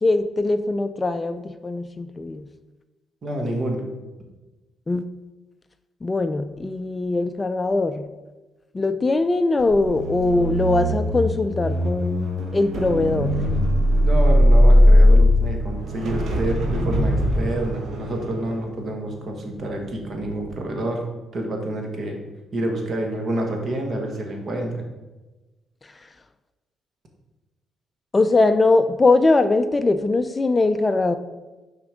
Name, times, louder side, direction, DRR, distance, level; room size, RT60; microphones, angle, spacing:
voice 1, 0.0-2.5 4.9-5.1 6.0-8.1 8.7-13.4 25.8-26.1 28.1-31.2, left 3 dB, 25° left, 10 dB, 0.4 m, -21 dB
voice 2, 3.2-3.9 14.0-21.0 21.3-22.2 22.5-24.8, right 1 dB, 50° right, 2 dB, 1.4 m, -28 dB
sound 1, 9.6-19.9 20.3-20.5, equal, 65° right, 1.1 m, -19 dB
6.0 x 4.5 x 4.9 m, 1.1 s
cardioid pair, 90°, 0 cm